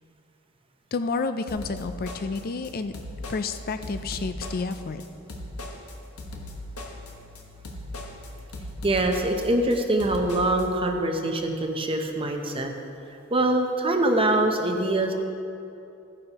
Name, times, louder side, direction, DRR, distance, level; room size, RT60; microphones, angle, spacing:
voice 1, 0.9-2.9 3.3-5.0, left 4 dB, 45° left, 10 dB, 0.4 m, -30 dB
sound 1, 1.5-10.7, left 1 dB, 90° left, 1.3 m, -38 dB
voice 2, 8.8-12.7 13.3-15.1, right 1 dB, 25° right, 4 dB, 0.7 m, -24 dB
14.5 x 9.8 x 2.9 m, 2.8 s
head